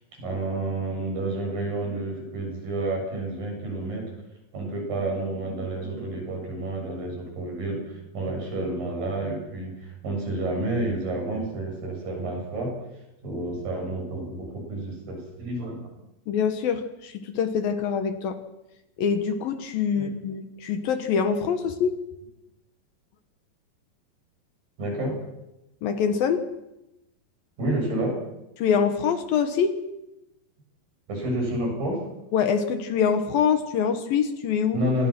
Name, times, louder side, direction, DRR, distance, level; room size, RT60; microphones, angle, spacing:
voice 1, 0.2-4.1 4.5-12.7 13.2-15.8 19.9-20.1 24.8-25.2 27.6-28.2 31.1-32.0 34.7-35.1, right 1 dB, 60° right, 0 dB, 9.8 m, -29 dB
voice 2, 16.3-18.4 19.0-21.9 25.8-26.4 28.6-29.7 32.3-34.8, left 7 dB, 65° left, 8 dB, 2.9 m, -24 dB
27.5 x 21.5 x 6.2 m, 0.91 s
omnidirectional pair, 4.6 m